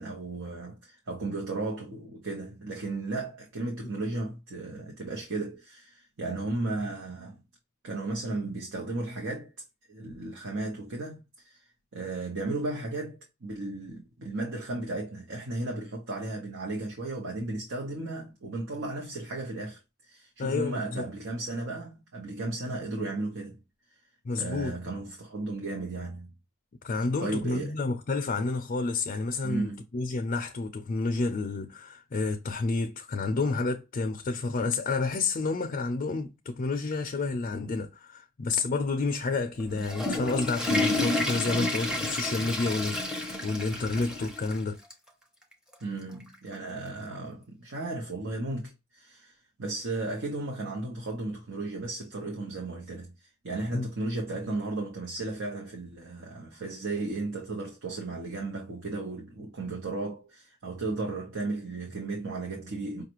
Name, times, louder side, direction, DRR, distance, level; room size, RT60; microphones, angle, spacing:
voice 1, 0.0-7.4 7.8-9.5 9.9-11.6 11.9-23.6 24.4-26.3 27.2-27.7 29.4-29.8 45.8-53.1 53.4-63.0, right 2 dB, 65° right, 0.9 m, -35 dB
voice 2, 20.4-21.0 24.2-24.7 26.8-44.8 53.7-53.9, left 3 dB, 40° left, 0.5 m, -30 dB
Water / Toilet flush, 39.6-44.6 44.9-45.0 45.7-45.8 47.1-47.2, left 2 dB, 5° right, 0.7 m, -30 dB
5.2 x 2.4 x 2.9 m
head